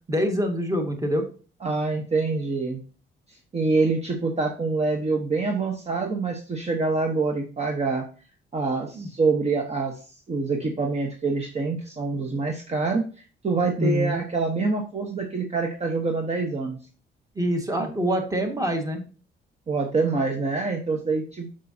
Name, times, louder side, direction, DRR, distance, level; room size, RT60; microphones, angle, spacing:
voice 1, 0.1-1.3 8.9-9.1 13.8-14.2 17.4-19.0, equal, 15° right, 4 dB, 1.8 m, -25 dB
voice 2, 1.6-2.8 3.5-8.0 8.5-10.0 10.3-13.0 13.4-16.8 19.7-21.5, right 3 dB, 35° right, 2 dB, 1.3 m, -25 dB
6.6 x 6.4 x 2.8 m, 0.36 s
cardioid pair, 90°, 20 cm